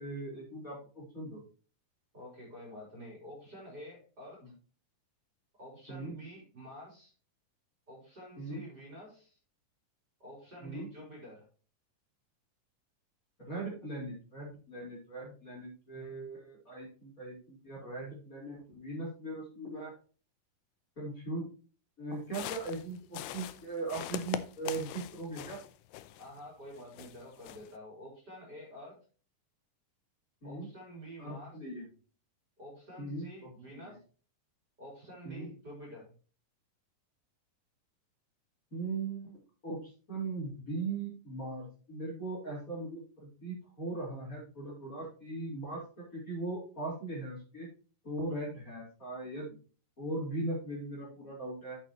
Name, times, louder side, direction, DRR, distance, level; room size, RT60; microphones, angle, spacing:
voice 1, 0.0-1.4 4.4-4.5 5.9-6.1 8.4-8.6 10.6-10.9 13.4-19.9 21.0-21.5 22.0-25.6 30.4-30.7 31.2-31.8 33.0-33.8 35.2-35.5 38.7-39.4 39.6-47.7 48.0-49.6 50.0-51.8, right 2 dB, 25° left, -6 dB, 4.6 m, -39 dB
voice 2, 2.1-4.4 5.6-7.1 7.9-9.4 10.2-11.5 26.2-29.0 30.4-31.6 32.6-34.0 34.8-36.1, equal, 30° right, -3 dB, 4.6 m, -48 dB
sound 1, 22.2-26.4 26.7-27.8, left 13 dB, 85° left, 2.3 m, -42 dB
9.0 x 8.9 x 3.0 m, 0.38 s
omnidirectional pair, 3.9 m